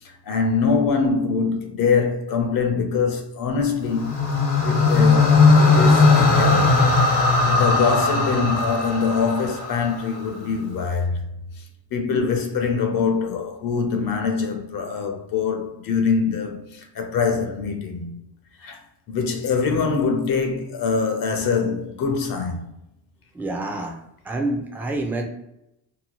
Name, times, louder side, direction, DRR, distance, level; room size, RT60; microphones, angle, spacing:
voice 1, 0.3-4.2 4.6-6.8 7.5-11.2 11.9-18.1 18.6-18.8 19.1-22.6, left 5 dB, 55° left, 0.6 m, -23 dB
sound 1, 3.9-10.2, left 3 dB, 80° left, 1.0 m, -18 dB
voice 2, 23.3-24.0 24.2-25.2, right 2 dB, 5° right, 0.3 m, -27 dB
2.8 x 2.1 x 2.9 m
cardioid pair, 110°, 40 cm